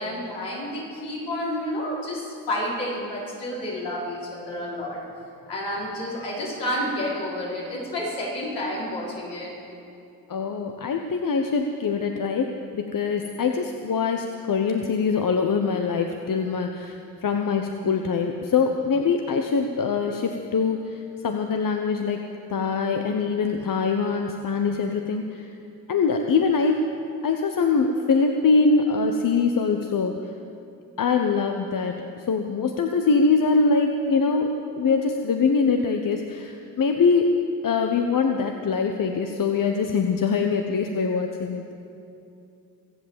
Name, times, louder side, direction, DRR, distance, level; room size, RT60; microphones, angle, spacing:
voice 1, 0.0-5.0 5.4-9.5, left 1 dB, 75° left, -5 dB, 5.2 m, -30 dB
voice 2, 10.3-22.2 22.5-25.5 25.9-27.0 27.2-30.3 31.0-41.6, left 4 dB, 50° left, 4 dB, 1.1 m, -23 dB
23.5 x 7.9 x 7.5 m, 2.6 s
supercardioid pair, 55°, 41 cm